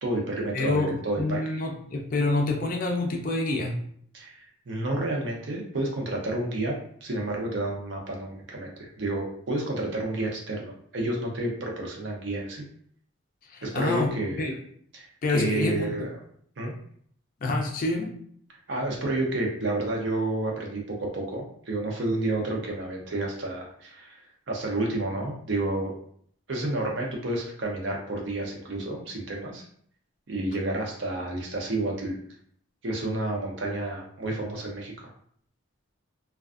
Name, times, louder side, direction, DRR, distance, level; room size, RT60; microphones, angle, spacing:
voice 1, 0.0-1.6 4.1-12.6 13.6-14.5 14.9-16.1 16.6-16.7 18.7-24.2 24.5-25.9 26.5-29.6 30.3-32.2 32.8-35.1, right 2 dB, 65° right, 0 dB, 0.6 m, -30 dB
voice 2, 0.5-3.8 13.5-14.1 14.4-14.5 15.2-16.1 17.4-18.1, left 2 dB, 40° left, 1 dB, 0.4 m, -27 dB
2.4 x 2.3 x 2.3 m, 0.62 s
head